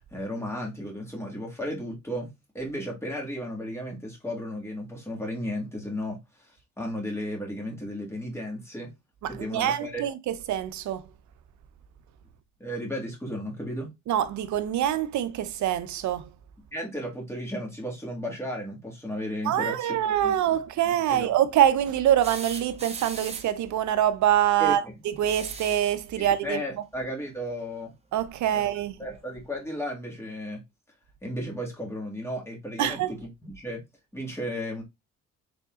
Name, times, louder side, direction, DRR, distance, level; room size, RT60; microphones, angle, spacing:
voice 1, 0.0-8.9 9.3-10.0 12.6-13.9 16.7-20.3 21.1-21.3 24.6-24.9 26.2-27.9 28.5-28.6 29.0-30.6 31.2-33.8 34.1-34.8, equal, 10° left, 1.7 m, -34 dB
voice 2, 9.2-11.1 14.1-16.3 19.4-26.6 28.1-29.0 32.8-33.1, right 11 dB, 70° right, 0.6 m, -25 dB
sound 1, 22.2-23.6 25.2-25.9 27.6-27.7 29.2-29.3, right 3 dB, 20° right, 0.8 m, -40 dB
3.8 x 3.5 x 2.4 m
cardioid pair, 90°, 30 cm